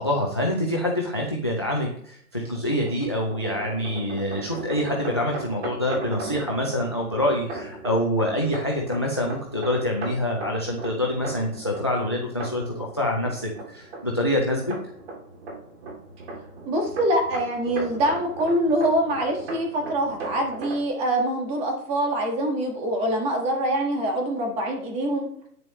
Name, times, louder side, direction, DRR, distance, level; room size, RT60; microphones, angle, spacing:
voice 1, 0.0-14.6, left 1 dB, 20° left, 1 dB, 0.5 m, -26 dB
sound 1, 2.4-20.9, right 2 dB, 40° right, 2.7 m, -38 dB
voice 2, 16.7-25.3, right 1 dB, 15° right, 2 dB, 1.5 m, -24 dB
10.5 x 9.1 x 3.1 m, 0.64 s
hypercardioid pair, 165°, 47 cm